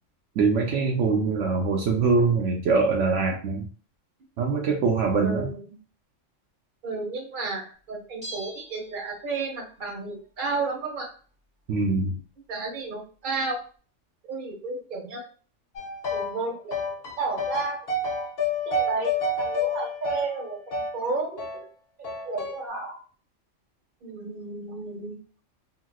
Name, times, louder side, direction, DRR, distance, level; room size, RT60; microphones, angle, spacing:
voice 1, 0.4-3.7 4.4-5.5 11.7-12.2, right 4 dB, 75° right, -1 dB, 0.9 m, -23 dB
voice 2, 5.2-5.6 6.8-11.1 12.5-13.6 14.3-15.2 16.1-17.9 18.7-20.6 20.9-21.7 22.0-23.0 24.0-25.2, right 3 dB, 45° right, 1 dB, 0.9 m, -32 dB
Bell, 8.2-9.6 9.9-10.0, right 1 dB, 5° right, 0.9 m, -42 dB
sound 1, 15.8-16.4 16.7-21.0 21.4-21.6 22.0-22.6, left 2 dB, 55° left, 1.0 m, -29 dB
2.9 x 2.8 x 2.3 m, 0.40 s
omnidirectional pair, 1.3 m